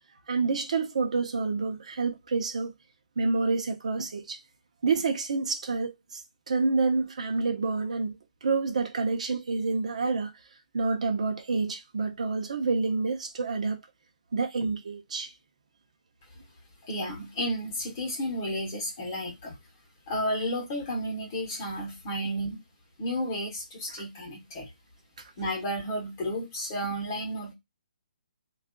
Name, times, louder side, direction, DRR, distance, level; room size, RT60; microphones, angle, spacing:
voice 1, 0.3-2.7 3.2-4.4 4.8-6.2 6.5-10.3 10.7-13.8 14.3-15.3, right 4 dB, 50° right, 0.7 m, -28 dB
voice 2, 16.8-19.6 20.1-22.6 23.0-24.7 25.4-27.5, equal, 20° left, 1.0 m, -32 dB
3.5 x 2.4 x 3.6 m
hypercardioid pair, 175°, 5 cm